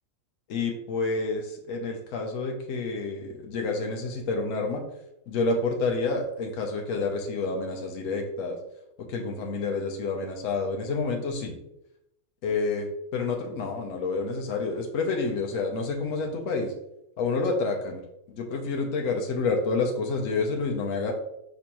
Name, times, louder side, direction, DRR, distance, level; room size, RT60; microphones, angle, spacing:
voice 1, 0.5-4.8 5.3-8.6 9.0-11.6 12.4-12.9 13.1-16.7 17.2-18.0 18.3-21.1, left 3 dB, 70° left, 2 dB, 1.0 m, -29 dB
5.0 x 3.4 x 2.9 m, 0.83 s
omnidirectional pair, 1.5 m